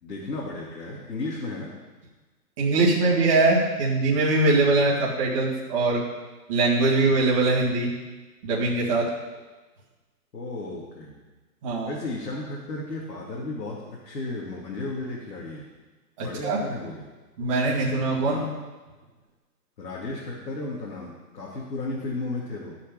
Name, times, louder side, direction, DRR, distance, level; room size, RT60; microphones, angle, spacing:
voice 1, 0.0-1.7 10.3-11.2 11.8-15.6 16.2-17.1 18.2-18.5 19.8-22.8, left 2 dB, 90° left, -4 dB, 2.7 m, -34 dB
voice 2, 2.6-6.0 6.5-7.9 8.4-9.1 11.6-11.9 16.2-16.6 17.4-18.4, right 3 dB, 20° right, -6 dB, 1.7 m, -22 dB
14.5 x 5.8 x 5.2 m, 1.2 s
hypercardioid pair, 175°, 49 cm